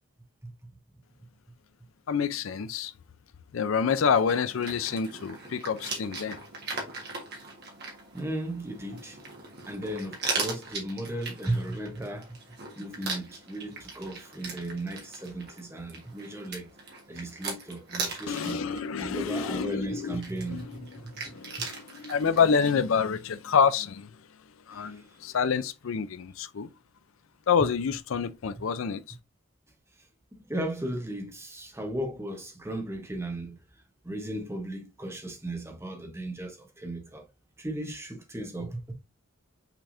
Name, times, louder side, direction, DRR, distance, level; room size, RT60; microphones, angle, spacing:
voice 1, 2.1-2.9 3.5-6.4 18.3-20.2 20.5-20.6 21.2-24.1 24.7-26.7 27.5-29.0, left 6 dB, 70° left, 0.4 m, -27 dB
sound 1, 3.9-22.7, right 3 dB, 50° right, 1.6 m, -39 dB
voice 2, 8.1-9.2 9.7-12.4 12.8-16.7 17.1-18.6 19.0-21.3 24.7-25.2 30.0-30.1 30.3-33.6 34.0-37.3 37.6-38.9, right 1 dB, 10° right, 0.9 m, -36 dB
5.9 x 3.4 x 2.6 m
head